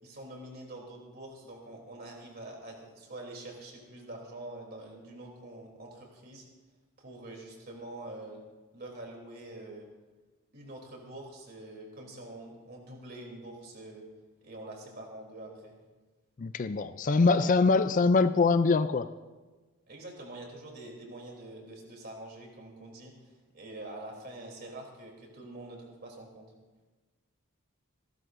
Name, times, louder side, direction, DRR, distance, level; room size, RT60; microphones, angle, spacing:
voice 1, 0.0-6.4 7.0-8.4 8.7-9.9 10.5-14.1 14.4-15.8 17.1-17.8 19.9-26.5, right 1 dB, 45° right, 0 dB, 3.2 m, -45 dB
voice 2, 16.4-19.1, left 4 dB, 35° left, 12 dB, 0.4 m, -23 dB
28.0 x 12.0 x 2.6 m, 1.3 s
head